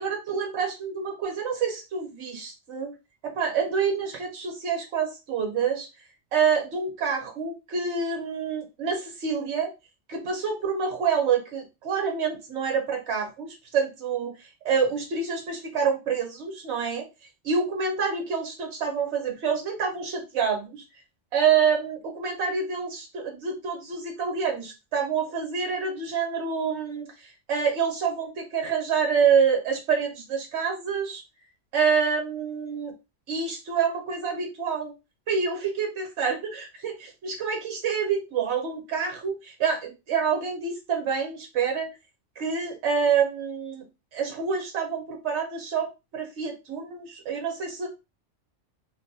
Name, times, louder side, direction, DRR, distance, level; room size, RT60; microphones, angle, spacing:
voice 1, 0.0-2.9 3.2-5.9 6.3-9.7 10.1-17.1 17.4-20.8 21.3-31.2 31.7-32.9 33.3-34.9 35.3-41.9 42.4-43.9 44.1-47.9, right 6 dB, 65° right, 3 dB, 1.0 m, -27 dB
2.5 x 2.1 x 2.6 m, 0.26 s
omnidirectional pair, 1.3 m